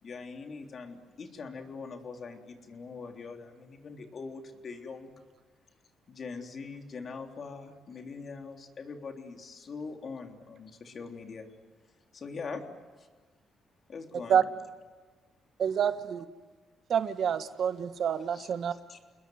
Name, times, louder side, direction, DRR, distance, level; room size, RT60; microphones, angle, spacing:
voice 1, 0.0-5.2 6.1-11.5 12.1-12.6 13.0-13.1 13.9-14.4 18.3-18.5 18.9-19.0, left 4 dB, 50° left, 4 dB, 3.6 m, -42 dB
voice 2, 15.6-16.2 16.9-18.7, right 8 dB, 65° right, 10 dB, 1.5 m, -27 dB
29.0 x 21.0 x 9.5 m, 1.3 s
cardioid pair, 90°, 0 cm